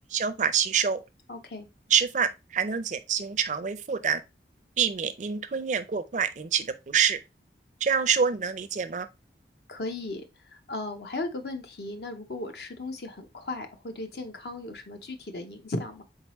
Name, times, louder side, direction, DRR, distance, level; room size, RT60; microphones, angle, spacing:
voice 1, 0.1-1.0 1.9-4.2 4.8-7.2 7.8-9.1, right 7 dB, 45° right, 0.5 m, -26 dB
voice 2, 1.3-1.7 9.7-10.2 10.5-16.0, left 2 dB, 65° left, 0.8 m, -36 dB
4.6 x 3.8 x 3.0 m
head